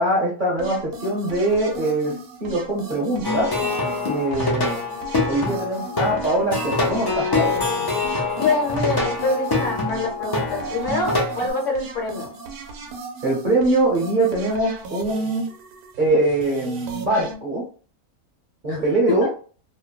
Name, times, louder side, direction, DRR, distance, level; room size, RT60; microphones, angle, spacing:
voice 1, 0.0-2.2 2.4-3.5 4.1-4.8 5.3-7.6 13.2-15.5 16.0-17.6 18.6-19.3, right 2 dB, 45° right, -3 dB, 0.7 m, -22 dB
sound 1, 0.6-17.3, right 4 dB, 85° right, 1.2 m, -38 dB
Plucked string instrument, 3.2-11.5, left 3 dB, 40° left, 0.3 m, -25 dB
voice 2, 8.3-12.3 18.7-18.8 19.2-19.3, left 3 dB, 60° left, -1 dB, 1.2 m, -25 dB
3.0 x 2.0 x 2.2 m, 0.39 s
omnidirectional pair, 1.5 m